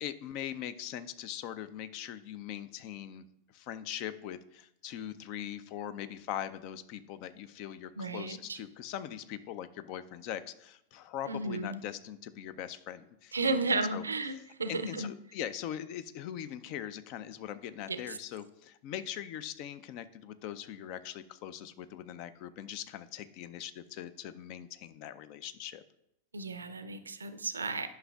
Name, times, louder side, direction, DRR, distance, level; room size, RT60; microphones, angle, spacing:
voice 1, 0.0-3.3 3.5-14.1 14.7-25.8, left 10 dB, 45° left, 13 dB, 0.4 m, -41 dB
voice 2, 8.0-8.6 11.3-11.8 13.3-15.1 17.9-18.2 26.3-27.9, right 3 dB, 75° right, 10 dB, 0.5 m, -33 dB
11.0 x 5.6 x 2.4 m, 0.82 s
figure-of-eight pair, 90°, 0 cm